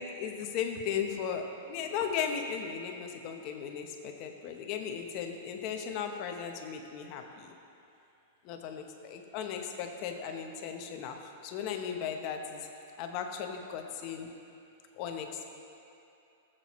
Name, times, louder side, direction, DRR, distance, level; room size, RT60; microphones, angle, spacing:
voice 1, 0.0-7.5 8.4-12.7 13.0-14.3 14.9-15.5, left 7 dB, 35° left, 4 dB, 0.9 m, -36 dB
16.5 x 7.7 x 3.1 m, 2.7 s
supercardioid pair, 160°, 0 cm